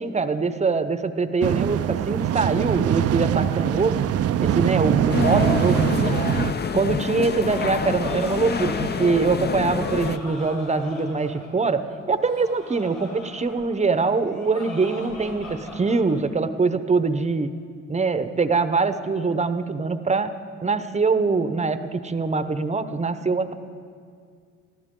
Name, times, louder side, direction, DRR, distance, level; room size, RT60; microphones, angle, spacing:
voice 1, 0.0-4.1 4.4-6.2 6.7-17.5 17.9-20.3 20.6-23.5, right 4 dB, 20° right, 11 dB, 0.8 m, -23 dB
sound 1, 1.4-6.5, right 10 dB, 55° right, 0.5 m, -23 dB
sound 2, 5.1-10.2, left 5 dB, 35° left, 0.7 m, -27 dB
Laughter, 7.3-16.2, left 3 dB, 90° left, 4.8 m, -39 dB
24.5 x 14.5 x 3.8 m, 2.2 s
cardioid pair, 90°, 30 cm